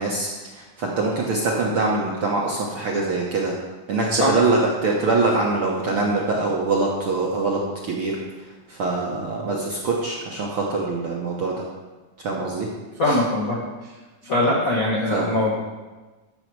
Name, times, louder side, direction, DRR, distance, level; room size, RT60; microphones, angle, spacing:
voice 1, 0.0-3.5 3.9-8.2 8.7-11.6 12.2-12.7 13.1-13.2 15.1-15.3, right 3 dB, 65° right, -3 dB, 1.4 m, -24 dB
voice 2, 13.0-13.9 14.2-15.5, left 1 dB, 65° left, -4 dB, 0.8 m, -22 dB
13.5 x 6.2 x 4.7 m, 1.2 s
omnidirectional pair, 3.8 m